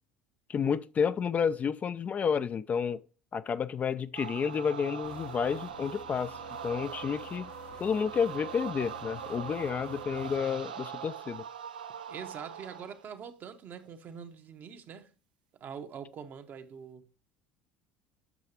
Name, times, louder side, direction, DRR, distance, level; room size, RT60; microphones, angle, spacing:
voice 1, 0.5-3.0 3.3-7.5 7.8-11.4, left 6 dB, 35° left, 0.4 m, -30 dB
sound 1, 4.1-13.0, right 8 dB, 85° right, 0.5 m, -42 dB
sound 2, 5.0-10.4, left 6 dB, 70° left, 1.0 m, -52 dB
voice 2, 12.1-15.1 15.6-17.0, right 7 dB, 45° right, 1.0 m, -44 dB
8.3 x 6.4 x 2.8 m
hypercardioid pair, 65°, 5 cm